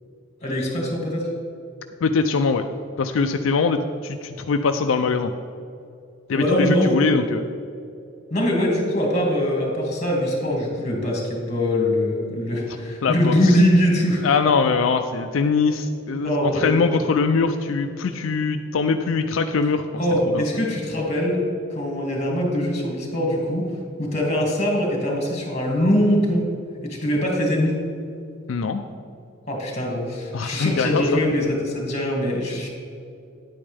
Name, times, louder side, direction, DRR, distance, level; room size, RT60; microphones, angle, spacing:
voice 1, 0.4-1.3 6.3-6.9 8.3-14.2 16.2-16.8 20.0-23.7 24.0-26.5 26.8-27.8 29.5-32.7, left 1 dB, 35° left, -1 dB, 2.3 m, -22 dB
voice 2, 2.0-2.6 3.0-5.3 6.3-7.5 13.0-13.6 14.2-19.8 20.3-20.4 28.5-28.8 30.3-31.0, left 4 dB, 85° left, 6 dB, 0.4 m, -22 dB
10.0 x 8.6 x 3.4 m, 2.5 s
head